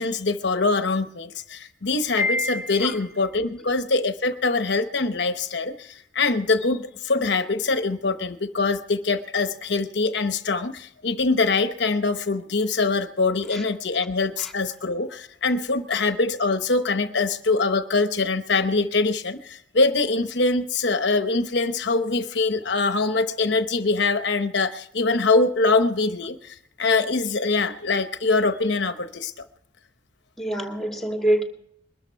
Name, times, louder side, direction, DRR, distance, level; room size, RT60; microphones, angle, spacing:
voice 1, 0.0-29.3, left 3 dB, 60° left, 0.9 m, -23 dB
Piano, 2.2-3.2, left 2 dB, 15° right, 3.6 m, -28 dB
voice 2, 30.4-31.4, right 1 dB, ahead, 2.3 m, -25 dB
22.0 x 13.0 x 4.6 m
head